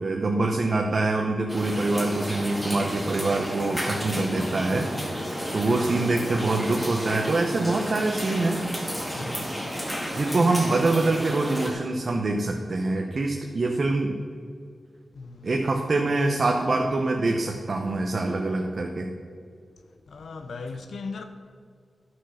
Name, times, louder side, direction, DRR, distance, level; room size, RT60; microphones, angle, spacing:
voice 1, 0.0-4.9 5.5-8.6 10.1-14.2 15.4-19.1, right 2 dB, 50° right, 0.8 m, -25 dB
sound 1, 1.5-11.7, equal, 10° left, 2.0 m, -32 dB
voice 2, 9.1-9.7 15.2-15.5 20.1-21.2, left 4 dB, 80° left, 0.6 m, -38 dB
11.0 x 6.3 x 6.3 m
wide cardioid pair, 95°, 0 cm